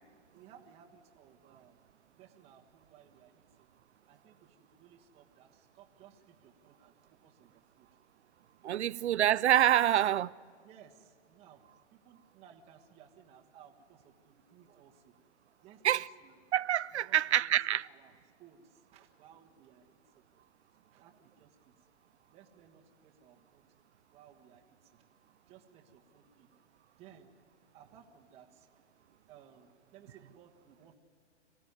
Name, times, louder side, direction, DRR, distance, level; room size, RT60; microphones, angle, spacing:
voice 1, 0.3-1.8 2.2-3.7 4.1-7.9 10.6-11.6 11.9-15.1 15.6-16.4 16.9-17.5 17.8-18.1 18.4-20.2 20.9-21.7 22.3-23.7 24.1-25.0 25.5-26.5 27.0-27.3 27.7-28.8 29.3-31.0, right 8 dB, 15° right, 1.5 m, -59 dB
voice 2, 8.6-10.3 15.8-16.1 16.5-17.9, right 11 dB, 65° right, 0.6 m, -26 dB
26.5 x 16.0 x 9.7 m
hypercardioid pair, 150°, 36 cm